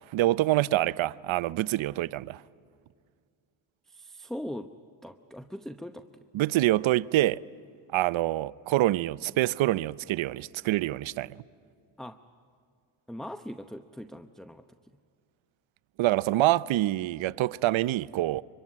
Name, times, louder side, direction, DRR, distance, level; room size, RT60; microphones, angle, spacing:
voice 1, 0.1-2.4 6.3-7.4 7.9-11.3 16.0-18.4, right 16 dB, 70° right, 0.6 m, -26 dB
voice 2, 3.8-4.7 5.0-6.2 12.0-12.2 13.1-14.9, equal, ahead, 0.8 m, -41 dB
24.5 x 23.0 x 9.7 m
cardioid pair, 75°, 48 cm